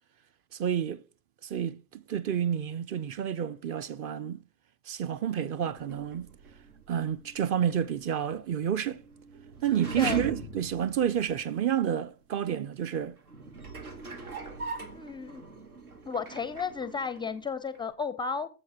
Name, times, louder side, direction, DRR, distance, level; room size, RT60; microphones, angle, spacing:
voice 1, 0.5-1.0 1.4-4.4 4.9-6.3 6.9-9.0 9.6-13.2, right 9 dB, 30° right, 0.6 m, -29 dB
sound 1, 5.6-11.7 12.3-12.4 13.2-17.5 17.7-17.8, right 3 dB, 80° right, 1.4 m, -42 dB
voice 2, 14.9-15.5 16.1-18.5, left 5 dB, 10° left, 0.4 m, -33 dB
14.5 x 7.6 x 2.9 m
figure-of-eight pair, 80°, 44 cm